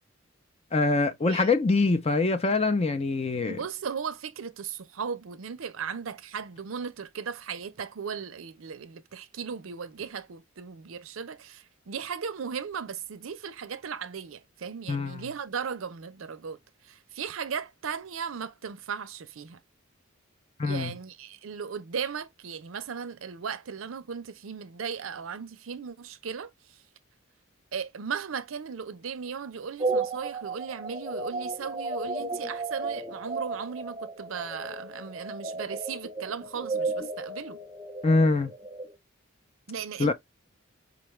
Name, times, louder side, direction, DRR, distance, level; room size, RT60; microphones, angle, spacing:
voice 1, 0.7-3.6 14.9-15.3 20.6-20.9 38.0-38.5 40.0-40.1, left 3 dB, 30° left, 0.5 m, -24 dB
voice 2, 3.4-16.6 16.8-19.6 20.6-26.8 27.7-37.6 39.7-40.1, right 6 dB, 85° right, 0.5 m, -37 dB
sound 1, 29.8-38.9, right 3 dB, 20° right, 0.8 m, -34 dB
5.0 x 2.3 x 3.1 m
head